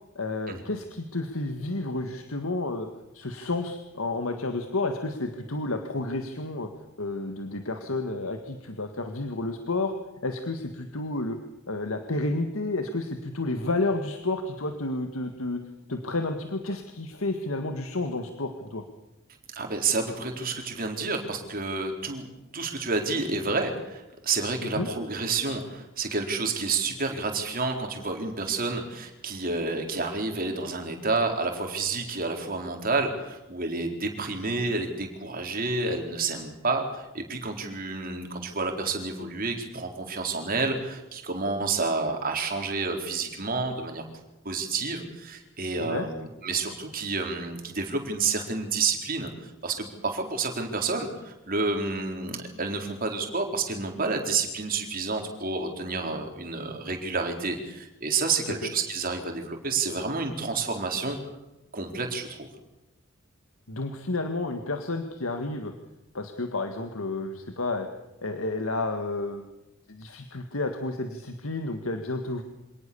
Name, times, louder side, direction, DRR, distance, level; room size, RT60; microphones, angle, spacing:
voice 1, 0.2-2.9 3.1-6.7 7.0-9.9 10.2-11.4 11.7-15.6 15.9-18.8 24.8-24.9 45.8-46.1 58.3-58.7 63.7-65.7 66.1-67.9 68.2-69.5 69.9-72.4, left 2 dB, 85° left, 6 dB, 1.9 m, -31 dB
voice 2, 19.6-22.3 22.5-44.0 44.4-61.2 61.7-62.5, right 4 dB, 45° right, 3 dB, 4.1 m, -29 dB
26.0 x 18.5 x 7.0 m, 0.97 s
head